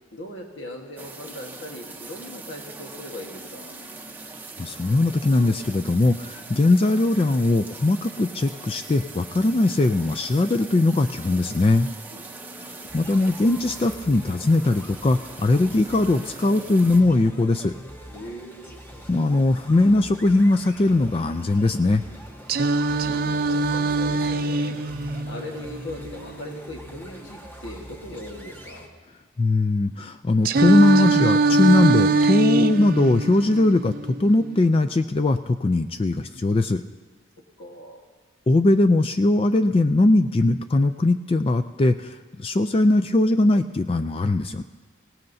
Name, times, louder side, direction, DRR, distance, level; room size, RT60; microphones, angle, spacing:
voice 1, 0.1-3.7 12.1-12.2 18.1-18.6 23.0-24.7 25.3-28.9 37.6-38.0, left 1 dB, 70° left, 1 dB, 1.5 m, -39 dB
sound 1, 1.0-17.0, right 3 dB, 10° right, 0.7 m, -41 dB
voice 2, 4.6-11.9 12.9-17.7 19.1-22.0 29.4-33.9 34.2-36.8 38.5-44.6, left 2 dB, 30° left, 8 dB, 0.3 m, -20 dB
sound 2, 12.9-28.9, equal, 10° left, 1.0 m, -42 dB
Singing, 22.5-26.5 30.5-34.5, right 3 dB, 45° right, 0.4 m, -22 dB
24.5 x 17.5 x 2.7 m, 1.4 s
head